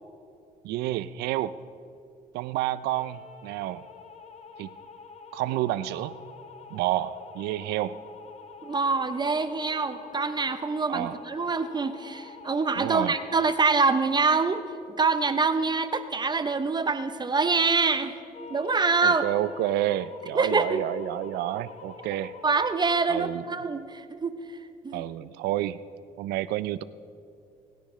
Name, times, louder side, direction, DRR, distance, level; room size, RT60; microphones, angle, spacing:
voice 1, 0.6-1.5 2.3-3.9 4.6-4.7 5.3-6.1 6.7-7.9 10.9-11.2 12.8-13.1 19.0-22.4 23.1-23.4 24.9-25.8 26.2-26.8, right 14 dB, 85° right, 16 dB, 0.4 m, -29 dB
sound 1, 2.9-13.5 18.3-22.8, left 5 dB, 40° left, 1.4 m, -47 dB
voice 2, 8.6-14.6 15.0-18.1 18.5-19.2 20.3-20.8 22.4-24.3 24.8-25.0, right 4 dB, 25° right, 10 dB, 0.7 m, -25 dB
26.5 x 10.0 x 3.2 m, 2.5 s
cardioid pair, 80°, 16 cm